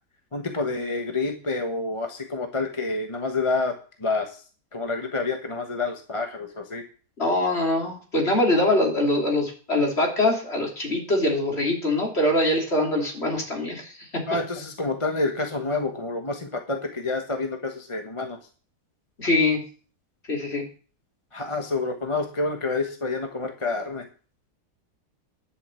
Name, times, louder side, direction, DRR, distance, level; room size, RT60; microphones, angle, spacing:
voice 1, 0.3-4.4 4.7-6.8 14.3-18.4 21.3-24.1, left 3 dB, 20° left, 4 dB, 1.2 m, -28 dB
voice 2, 7.2-14.2 19.2-19.6 20.3-20.6, left 1 dB, 40° left, 0 dB, 3.4 m, -23 dB
11.0 x 6.7 x 7.7 m, 0.39 s
omnidirectional pair, 1.7 m